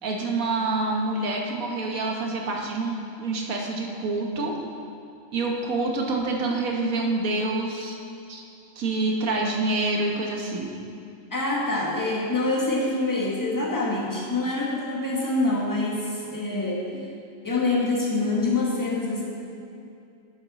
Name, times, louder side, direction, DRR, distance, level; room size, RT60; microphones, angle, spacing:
voice 1, 0.0-4.5 5.3-8.0 8.3-8.4 8.8-10.7 16.9-17.0, right 2 dB, 80° right, 0 dB, 1.5 m, -27 dB
voice 2, 11.3-16.9 17.4-19.2, left 2 dB, 15° left, -4 dB, 1.4 m, -25 dB
11.0 x 6.8 x 4.2 m, 2.6 s
omnidirectional pair, 1.4 m